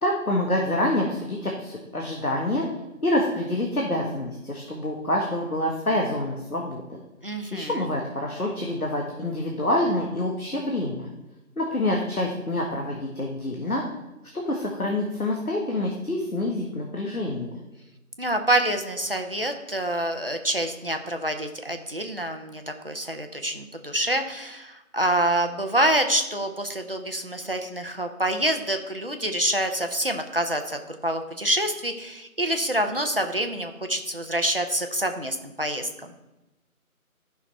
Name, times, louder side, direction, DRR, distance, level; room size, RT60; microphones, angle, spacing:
voice 1, 0.0-2.7 3.0-7.0 7.5-11.1 11.6-13.8 14.3-17.5, left 1 dB, 75° left, 0 dB, 1.7 m, -27 dB
voice 2, 7.2-7.9 18.2-36.1, right 1 dB, 40° right, 5 dB, 0.8 m, -27 dB
12.5 x 5.8 x 4.4 m, 1.0 s
figure-of-eight pair, 170°, 44 cm